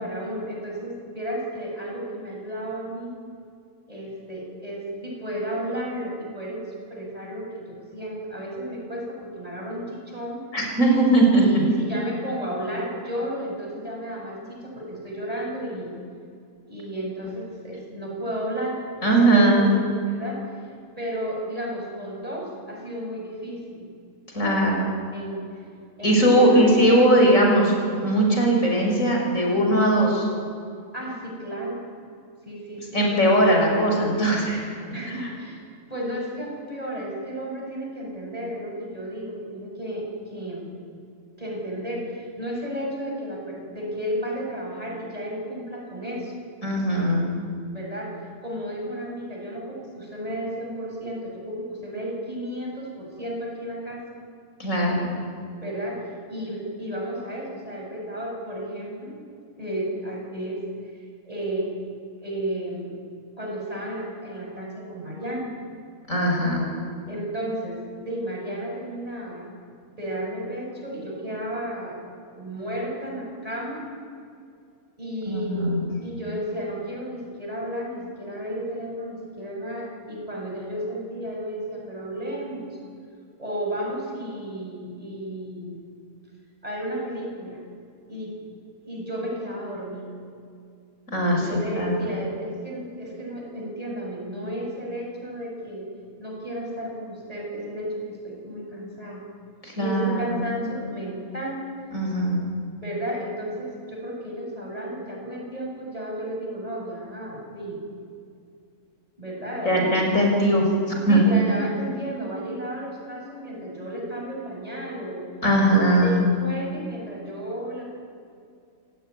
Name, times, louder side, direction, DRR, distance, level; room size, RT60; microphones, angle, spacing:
voice 1, 0.0-3.1 3.9-6.6 6.9-10.5 11.3-15.9 16.7-18.8 19.2-19.4 19.8-20.6 21.0-23.9 25.1-25.4 26.0-26.7 30.9-31.8 32.4-33.7 34.9-35.6 35.9-40.8 41.4-46.3 47.7-48.1 48.4-54.0 55.6-59.1 59.6-60.6 60.9-61.7 62.2-63.0 63.4-65.5 67.1-69.5 69.8-73.8 75.0-75.7 76.0-82.8 83.4-85.8 86.6-87.6 88.1-88.4 88.8-90.1 91.3-95.8 96.2-99.2 99.8-101.6 102.8-107.8 109.2-110.0 111.1-115.2 115.7-117.8, right 1 dB, 25° right, -2 dB, 7.4 m, -33 dB
voice 2, 10.5-11.6 19.0-19.8 24.3-24.9 26.0-27.7 28.0-30.3 32.9-34.9 46.6-47.3 54.6-55.1 66.1-66.7 75.3-75.9 91.1-92.1 99.6-100.3 101.9-102.4 109.6-110.6 111.1-111.2 115.4-116.2, right 1 dB, 65° left, 0 dB, 6.3 m, -20 dB
28.5 x 16.5 x 9.9 m, 2.3 s
omnidirectional pair, 1.5 m